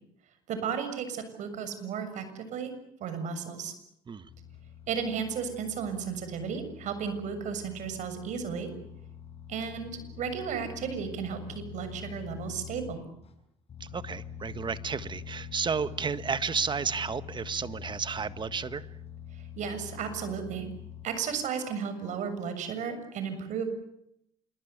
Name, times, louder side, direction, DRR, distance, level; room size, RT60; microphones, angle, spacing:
voice 1, 0.5-2.7 3.0-3.7 4.9-8.7 9.5-13.0 19.4-20.7 21.0-23.7, right 6 dB, 60° right, 9 dB, 7.1 m, -34 dB
sound 1, 4.3-13.3 13.7-21.1, left 8 dB, 45° left, 7.2 m, -45 dB
voice 2, 13.8-18.9, right 6 dB, 35° right, 13 dB, 1.7 m, -32 dB
27.0 x 23.5 x 8.3 m, 0.76 s
supercardioid pair, 70°, 14 cm